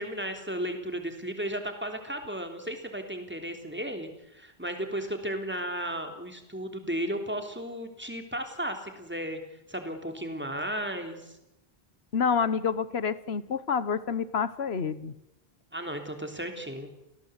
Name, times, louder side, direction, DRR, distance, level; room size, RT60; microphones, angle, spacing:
voice 1, 0.0-9.4 9.7-11.4 15.7-16.9, equal, 10° right, 5 dB, 3.4 m, -34 dB
voice 2, 12.1-15.1, left 6 dB, 85° left, 15 dB, 1.4 m, -28 dB
29.5 x 17.5 x 8.2 m, 0.90 s
omnidirectional pair, 1.0 m